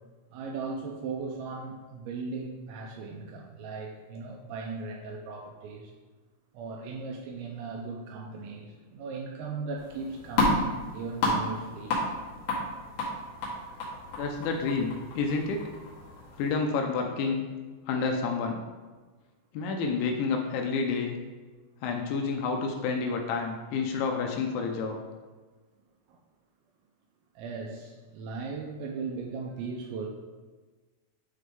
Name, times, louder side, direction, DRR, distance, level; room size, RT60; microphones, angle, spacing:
voice 1, 0.3-5.9 6.5-12.0 26.1-26.2 27.4-30.1, right 4 dB, 85° right, 0 dB, 2.7 m, -38 dB
sound 1, 9.8-16.5, left 2 dB, 60° left, 3.1 m, -32 dB
voice 2, 14.1-15.6 16.4-17.5 17.9-18.6 19.5-21.2 21.8-25.0, left 4 dB, 80° left, 2 dB, 2.8 m, -29 dB
10.0 x 3.8 x 3.6 m, 1.3 s
omnidirectional pair, 5.6 m